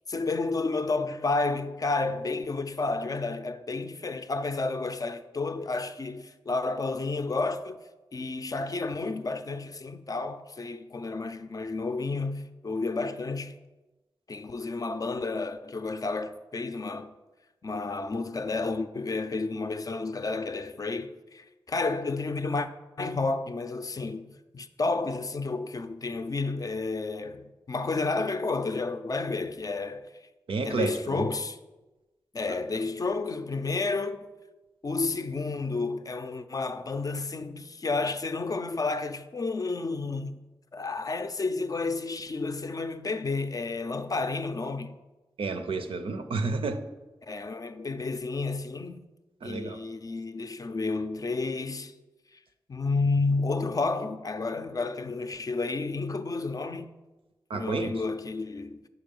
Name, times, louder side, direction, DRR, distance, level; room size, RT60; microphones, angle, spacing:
voice 1, 0.1-7.8 8.1-13.5 14.3-17.1 17.6-22.7 23.0-24.3 24.5-30.1 30.6-31.6 32.3-34.2 34.8-40.4 40.7-44.9 47.3-49.0 49.4-51.9 52.7-56.9 57.5-58.9, left 3 dB, 40° left, 0.4 m, -31 dB
voice 2, 30.5-31.3 45.4-46.8 49.4-49.8 57.5-58.0, right 3 dB, 85° right, 0.5 m, -30 dB
5.6 x 4.7 x 5.2 m
wide cardioid pair, 65°, 9 cm